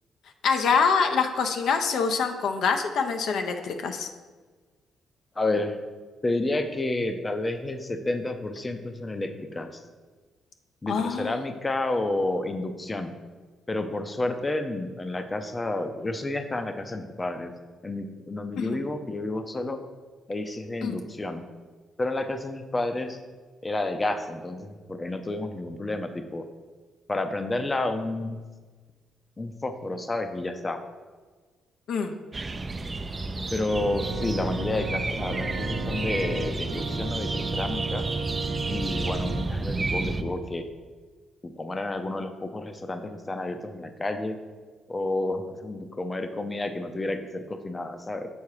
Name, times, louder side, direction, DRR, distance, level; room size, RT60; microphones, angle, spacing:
voice 1, 0.4-4.1 10.9-11.3 18.6-18.8 20.8-21.0 31.9-32.2, left 5 dB, 70° left, 6 dB, 0.5 m, -25 dB
voice 2, 5.4-5.8 6.2-9.8 10.8-13.1 13.7-17.5 17.8-19.8 20.3-21.4 22.0-23.2 23.6-26.4 27.1-28.4 29.4-30.8 33.5-38.0 38.7-40.6 41.4-44.4 44.9-48.3, left 2 dB, 20° left, 8 dB, 0.5 m, -30 dB
sound 1, 32.3-40.2, right 3 dB, 25° right, 0.4 m, -32 dB
Organ, 33.7-39.5, right 3 dB, 80° right, 0.8 m, -33 dB
7.1 x 3.6 x 4.8 m, 1.4 s
cardioid pair, 90°, 0 cm